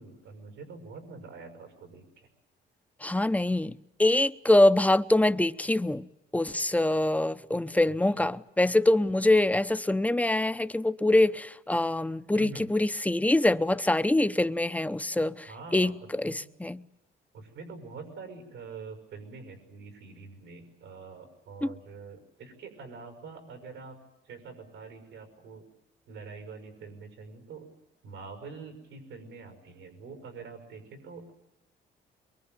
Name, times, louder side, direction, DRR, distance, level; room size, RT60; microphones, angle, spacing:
voice 1, 0.0-2.3 7.9-8.1 12.3-12.7 15.2-15.9 16.3-16.4 17.3-24.0 24.2-25.6 26.1-27.8 28.0-31.3, right 4 dB, 90° right, 5.7 m, -45 dB
voice 2, 3.0-6.1 6.3-16.8 21.6-21.7, left 1 dB, 5° left, 0.9 m, -24 dB
23.5 x 23.0 x 9.2 m
cardioid pair, 90°, 20 cm